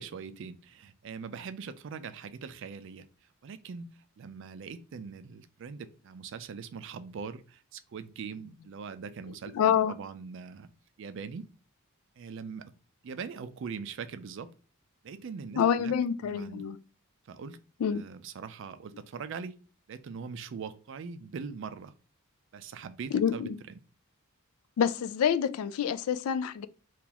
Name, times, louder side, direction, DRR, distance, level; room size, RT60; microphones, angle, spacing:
voice 1, 0.0-3.1 3.4-3.9 4.2-10.7 11.0-11.5 12.2-12.7 13.0-14.5 15.0-15.9 16.2-16.7 17.2-17.6 17.9-19.6 19.9-21.9 22.5-23.8, right 5 dB, 55° right, 0.3 m, -41 dB
voice 2, 9.6-9.9 15.6-16.8 17.8-18.0 23.1-23.6 24.8-26.7, left 8 dB, 75° left, 0.3 m, -27 dB
2.9 x 2.4 x 3.8 m
head